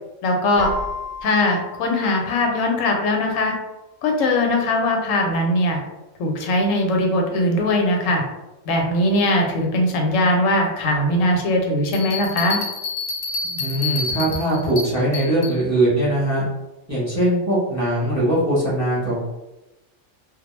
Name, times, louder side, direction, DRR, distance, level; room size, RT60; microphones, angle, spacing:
voice 1, 0.2-0.7 1.2-3.5 4.0-5.8 6.2-8.2 8.7-12.6, left 1 dB, 85° left, 2 dB, 1.0 m, -20 dB
Keyboard (musical), 0.6-3.3, left 1 dB, 85° right, 1.0 m, -34 dB
Bell, 11.9-15.6, left 4 dB, 65° left, 0.8 m, -28 dB
voice 2, 13.4-16.4 16.9-19.3, right 1 dB, 15° right, -7 dB, 0.7 m, -21 dB
2.2 x 2.0 x 3.0 m, 1.0 s
omnidirectional pair, 1.3 m